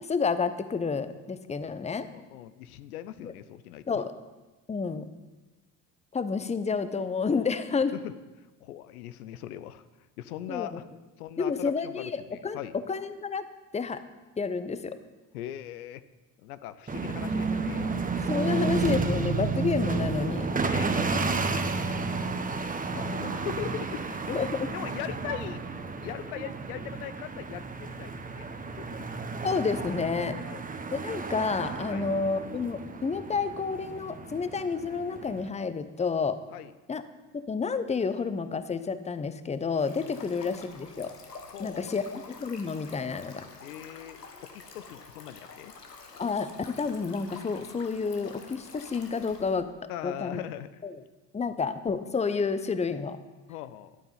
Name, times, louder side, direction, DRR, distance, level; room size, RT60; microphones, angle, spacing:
voice 1, 0.1-2.1 3.2-3.3 3.9-4.1 4.7-5.0 6.1-8.0 10.5-10.7 11.4-12.6 12.9-13.5 13.7-14.0 14.4-15.0 18.1-20.5 24.3-24.7 29.4-30.4 30.9-36.4 36.9-37.0 37.3-41.1 41.6-43.5 46.2-49.7 50.0-50.4 50.8-51.0 51.3-53.2, left 5 dB, 15° left, 12 dB, 0.9 m, -30 dB
voice 2, 2.1-4.0 7.9-8.1 8.6-9.8 10.2-10.9 11.2-12.8 15.3-16.0 16.4-18.0 20.6-21.1 21.7-24.5 24.7-25.6 26.0-29.1 30.3-30.6 31.9-32.1 36.5-36.7 40.2-40.3 41.5-42.0 43.6-45.7 49.9-50.8 53.5-54.0, left 12 dB, 70° left, 14 dB, 0.8 m, -40 dB
sound 1, 16.9-35.5, right 4 dB, 15° right, 1.3 m, -32 dB
Stream, 39.8-49.6, left 4 dB, 85° left, 1.5 m, -48 dB
12.5 x 8.5 x 5.6 m, 1.2 s
figure-of-eight pair, 60°, 47 cm